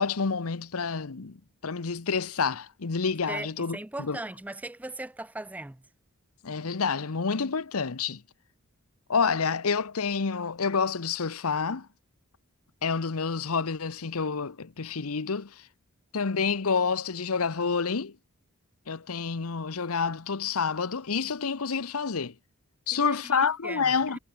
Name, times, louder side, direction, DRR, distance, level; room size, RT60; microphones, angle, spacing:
voice 1, 0.0-4.2 6.4-8.2 9.1-11.9 12.8-15.7 16.1-18.2 18.9-22.3 22.9-24.2, left 5 dB, 80° left, 0.9 m, -28 dB
voice 2, 3.3-5.8 22.9-24.2, right 2 dB, 5° right, 0.3 m, -39 dB
head